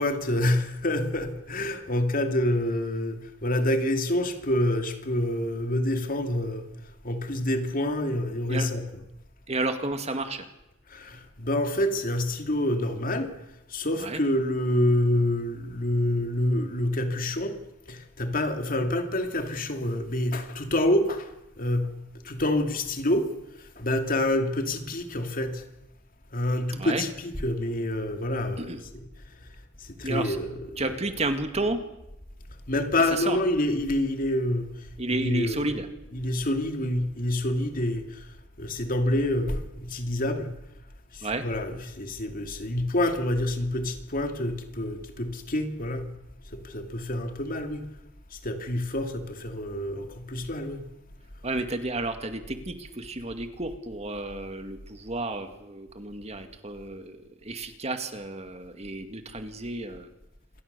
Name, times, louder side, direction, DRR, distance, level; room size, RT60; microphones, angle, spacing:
voice 1, 0.0-9.1 10.9-13.4 13.7-17.6 17.9-22.0 22.2-25.6 26.3-29.5 29.8-31.1 32.7-35.8 36.1-40.5 41.1-46.1 46.5-47.9 48.3-50.8, left 1 dB, 45° left, 2.6 m, -27 dB
voice 2, 9.5-10.5 14.0-14.2 26.8-27.0 28.6-28.8 30.0-30.4 30.8-31.8 33.1-33.4 35.0-35.9 41.2-41.4 51.4-60.1, right 2 dB, 30° right, 2.1 m, -31 dB
27.5 x 23.0 x 6.9 m
head